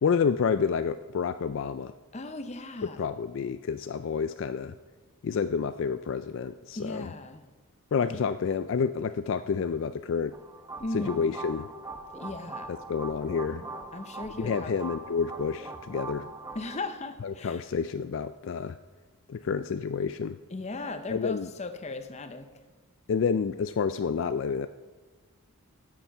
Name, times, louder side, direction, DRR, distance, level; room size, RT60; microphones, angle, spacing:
voice 1, 0.0-1.9 3.0-4.8 5.2-7.1 7.9-10.4 10.9-11.7 12.7-13.6 14.4-16.3 17.2-18.8 19.3-20.4 21.1-21.5 23.1-24.7, left 6 dB, 60° left, 11 dB, 0.3 m, -29 dB
voice 2, 2.1-3.0 6.7-7.4 8.1-8.2 10.8-11.3 12.1-12.7 13.9-14.8 16.5-17.6 20.5-22.5, left 2 dB, 30° left, 9 dB, 0.7 m, -37 dB
sound 1, 10.3-16.8, right 3 dB, 15° right, 0.8 m, -41 dB
13.5 x 7.2 x 5.5 m, 1.3 s
head